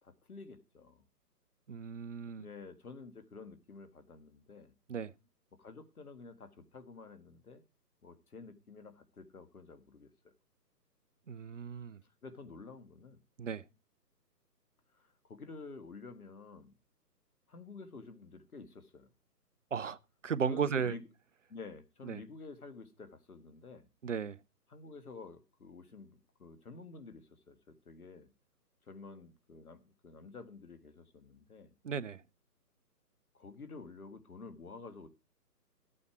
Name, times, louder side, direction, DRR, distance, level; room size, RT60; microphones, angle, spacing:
voice 1, 0.0-1.0 2.4-4.7 5.5-7.6 8.0-10.3 12.2-13.2 14.9-16.7 17.5-19.1 20.5-21.0 21.5-23.9 24.7-28.3 28.9-31.7 33.3-35.1, left 4 dB, 60° left, 1.9 m, -50 dB
voice 2, 1.7-2.5 4.9-5.1 11.3-12.0 13.4-13.6 19.7-20.0 20.2-21.0 22.0-22.2 24.0-24.4 31.8-32.2, right 6 dB, 50° right, 0.6 m, -35 dB
14.0 x 8.6 x 4.6 m
figure-of-eight pair, 140°, 49 cm